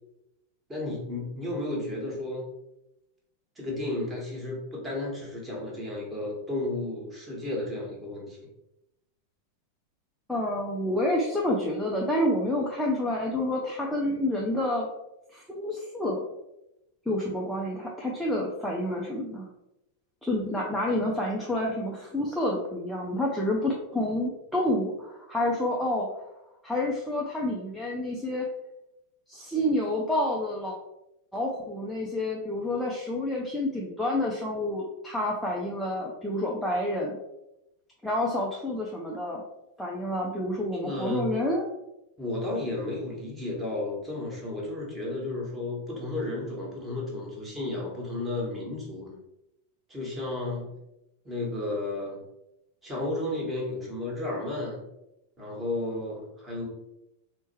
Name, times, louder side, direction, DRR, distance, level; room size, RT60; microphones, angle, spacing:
voice 1, 0.7-2.5 3.6-8.5 40.7-41.3 42.2-49.2 49.9-50.7 51.2-52.2 52.8-54.8 55.4-56.7, left 2 dB, 15° right, -3 dB, 1.2 m, -33 dB
voice 2, 10.3-14.9 15.3-16.2 17.1-19.5 20.2-26.2 26.6-28.5 29.3-30.7 31.3-37.2 38.0-39.4 39.8-41.7, left 1 dB, ahead, -4 dB, 0.5 m, -29 dB
4.3 x 2.1 x 3.0 m, 0.89 s
figure-of-eight pair, 90°, 0 cm